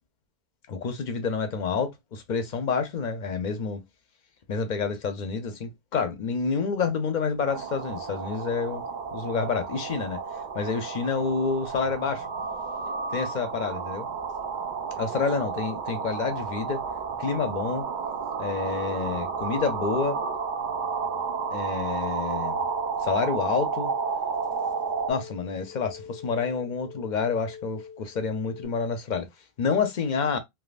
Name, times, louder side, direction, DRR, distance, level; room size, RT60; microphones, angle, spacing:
voice 1, 0.7-3.8 4.5-10.2 10.5-12.3 13.1-14.1 15.0-16.8 17.2-17.9 18.4-20.2 21.5-22.6 23.0-23.9 25.1-29.3 29.6-30.4, left 5 dB, 55° left, 0.6 m, -28 dB
sound 1, 7.5-25.1, right 5 dB, 60° right, 0.6 m, -32 dB
sound 2, 18.7-28.7, left 6 dB, 85° left, 0.8 m, -44 dB
3.4 x 2.2 x 2.3 m
omnidirectional pair, 1.1 m